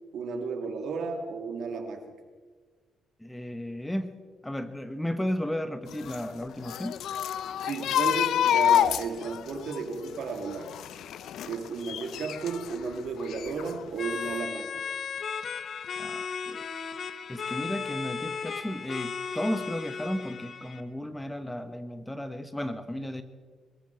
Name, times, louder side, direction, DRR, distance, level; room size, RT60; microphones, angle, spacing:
voice 1, 0.1-2.0 7.6-10.7 11.4-14.6, right 4 dB, 70° right, 5 dB, 2.3 m, -33 dB
voice 2, 3.2-4.2 4.4-7.0 16.0-16.6 17.3-23.2, left 1 dB, 10° left, 10 dB, 1.1 m, -34 dB
sound 1, 5.9-12.8 13.2-14.1 14.3-14.5, left 10 dB, 75° left, 0.5 m, -28 dB
sound 2, 14.0-20.8, left 6 dB, 55° left, 1.1 m, -35 dB
22.0 x 14.0 x 4.5 m, 1.5 s
cardioid pair, 90°, 0 cm